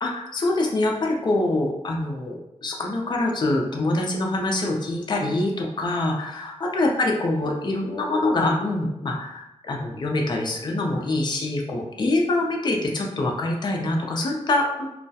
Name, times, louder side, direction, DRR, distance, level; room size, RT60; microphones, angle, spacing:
voice 1, 0.0-14.9, left 2 dB, 40° left, 0 dB, 0.4 m, -25 dB
2.2 x 2.1 x 2.7 m, 0.86 s
wide cardioid pair, 105°, 11 cm